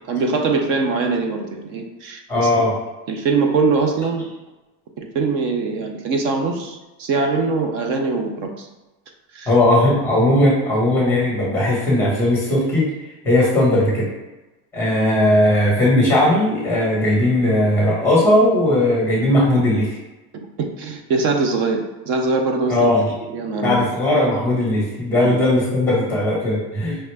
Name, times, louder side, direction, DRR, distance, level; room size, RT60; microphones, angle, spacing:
voice 1, 0.1-2.8 3.1-4.3 5.0-8.7 9.3-9.5 20.3-22.9 23.3-23.8 25.2-25.4, right 4 dB, 35° right, 4 dB, 0.4 m, -22 dB
voice 2, 2.3-2.7 9.5-12.9 13.2-14.1 14.7-19.9 22.7-23.0 23.6-27.0, left 1 dB, 5° left, -5 dB, 1.1 m, -17 dB
5.3 x 2.4 x 3.2 m, 1.1 s
cardioid pair, 175°, 38 cm